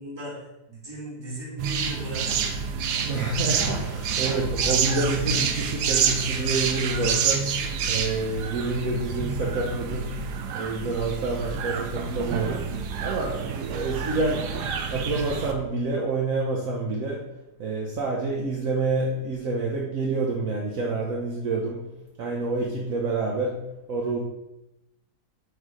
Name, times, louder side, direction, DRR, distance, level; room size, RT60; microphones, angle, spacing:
voice 1, 0.0-2.5, right 1 dB, 15° right, -4 dB, 1.5 m, -37 dB
sound 1, 1.6-15.5, right 6 dB, 90° right, 1.2 m, -28 dB
voice 2, 3.0-10.2 10.5-12.7 13.0-17.3 17.6-21.9 22.2-23.6 23.9-24.2, right 3 dB, 60° right, -2 dB, 1.1 m, -28 dB
6.4 x 3.2 x 4.9 m, 0.95 s
omnidirectional pair, 1.7 m